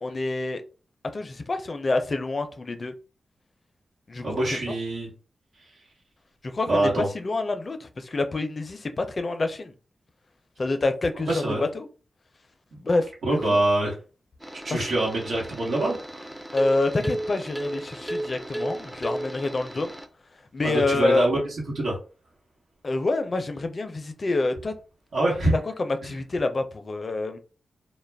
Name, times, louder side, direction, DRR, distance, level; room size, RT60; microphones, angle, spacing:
voice 1, 0.0-0.6 1.1-2.9 4.1-4.6 6.4-9.7 10.6-11.4 11.7-11.9 12.8-13.6 14.7-14.9 16.5-20.0 20.5-21.3 22.8-24.7 25.5-27.4, left 2 dB, 55° left, 0.4 m, -27 dB
voice 2, 4.2-5.1 6.7-7.1 11.3-11.6 13.3-13.9 14.6-16.2 20.6-21.4 21.7-22.0 25.1-25.5, right 2 dB, 80° right, 1.1 m, -24 dB
sound 1, 14.4-20.1, right 1 dB, 5° right, 0.4 m, -34 dB
2.3 x 2.0 x 3.3 m
cardioid pair, 45°, 0 cm